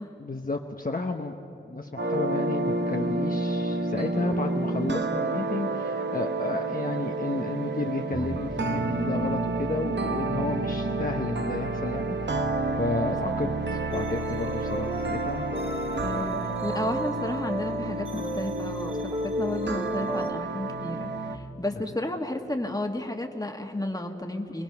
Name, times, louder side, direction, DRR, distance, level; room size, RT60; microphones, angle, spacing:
voice 1, 0.2-1.3 1.7-12.4 12.8-15.5 16.1-16.3, left 2 dB, 45° left, 2 dB, 1.0 m, -32 dB
sound 1, 2.0-21.4, right 2 dB, 60° right, 0.9 m, -30 dB
voice 2, 13.0-13.8 16.0-24.6, left 1 dB, 20° left, 4 dB, 1.6 m, -33 dB
sound 2, 13.9-20.3, right 1 dB, 30° right, 1.8 m, -34 dB
25.5 x 19.0 x 5.9 m, 2.6 s
wide cardioid pair, 55°, 20 cm